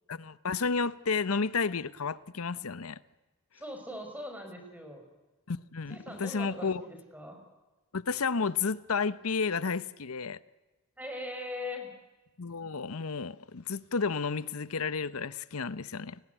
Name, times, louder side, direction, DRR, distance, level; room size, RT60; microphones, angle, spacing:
voice 1, 0.1-3.0 5.5-6.8 7.9-10.4 12.4-16.2, left 5 dB, 85° left, 0.9 m, -32 dB
voice 2, 3.5-5.0 5.9-7.4 11.0-11.9, left 1 dB, 10° right, 5.0 m, -40 dB
29.0 x 19.0 x 9.1 m
head